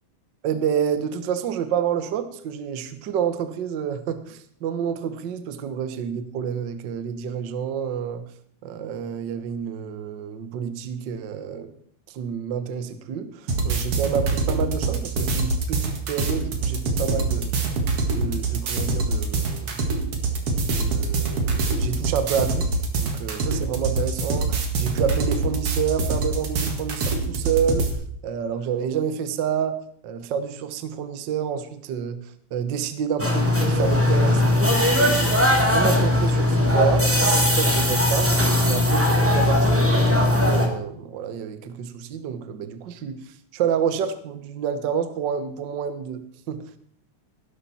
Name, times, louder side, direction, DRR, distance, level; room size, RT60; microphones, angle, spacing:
voice 1, 0.4-8.2 8.6-11.7 12.1-17.6 18.1-19.8 20.6-22.7 23.0-27.9 28.2-29.8 30.0-32.2 32.5-35.4 35.7-37.1 37.4-46.6, right 7 dB, 85° right, 10 dB, 1.0 m, -29 dB
sound 1, 13.5-27.9, right 3 dB, 50° right, 2.6 m, -25 dB
sound 2, 33.2-40.7, left 1 dB, 5° right, 1.3 m, -19 dB
18.5 x 11.0 x 4.3 m, 0.64 s
omnidirectional pair, 3.8 m